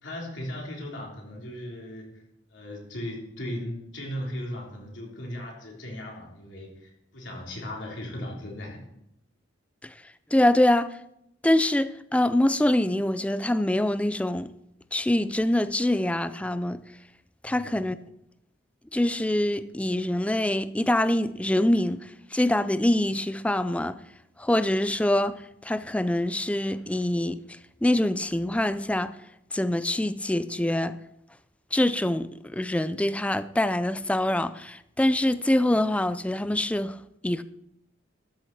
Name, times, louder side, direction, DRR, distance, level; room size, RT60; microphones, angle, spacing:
voice 1, 0.0-2.1 2.5-8.8 17.4-17.7, left 1 dB, 70° left, 3.5 m, -37 dB
voice 2, 10.3-10.9 11.4-14.5 14.9-16.8 17.4-18.0 18.9-24.0 24.4-27.4 27.8-29.1 29.5-31.0 31.7-37.0 37.2-37.4, left 1 dB, 5° left, 0.4 m, -24 dB
13.0 x 6.8 x 5.9 m
head